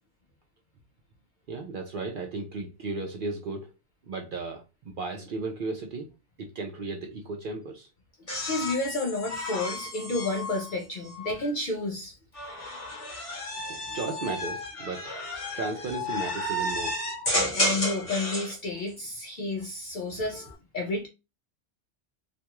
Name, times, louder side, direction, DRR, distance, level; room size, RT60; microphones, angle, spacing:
voice 1, 1.5-3.7 4.1-6.1 6.4-7.9 13.7-15.1 15.5-17.0, right 3 dB, 60° right, 0.5 m, -35 dB
sound 1, 8.3-11.5 12.3-18.6 20.0-20.5, left 1 dB, 30° left, 1.0 m, -32 dB
voice 2, 8.4-12.2 17.5-20.4 20.7-21.1, left 2 dB, 60° left, 0.5 m, -31 dB
2.5 x 2.2 x 2.9 m
omnidirectional pair, 1.3 m